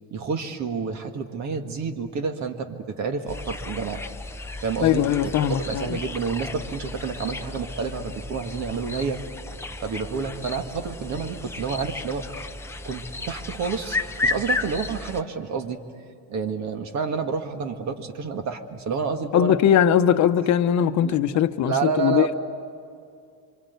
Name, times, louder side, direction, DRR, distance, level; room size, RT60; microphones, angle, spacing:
voice 1, 0.1-4.0 4.6-5.1 5.4-9.2 9.8-12.3 12.8-14.0 14.2-15.8 16.3-19.6 21.0-21.2 21.6-22.3, right 5 dB, 45° right, 1.9 m, -29 dB
sound 1, 3.3-15.2, left 3 dB, 5° left, 0.8 m, -33 dB
voice 2, 4.8-6.0 19.3-22.3, left 10 dB, 45° left, 1.0 m, -20 dB
27.0 x 25.5 x 8.3 m
cardioid pair, 155°, 39 cm